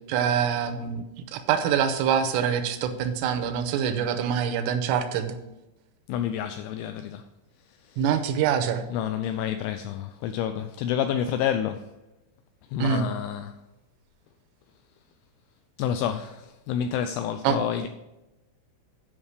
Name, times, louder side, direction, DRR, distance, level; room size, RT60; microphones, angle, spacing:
voice 1, 0.1-1.0 1.3-5.4 8.0-8.8 12.8-13.1 17.4-17.6, right 8 dB, 85° right, 3.1 m, -25 dB
voice 2, 6.1-7.3 7.8-8.2 8.9-11.9 12.7-13.6 15.8-17.9, left 9 dB, 85° left, 2.8 m, -29 dB
9.8 x 5.4 x 6.4 m
omnidirectional pair, 6.0 m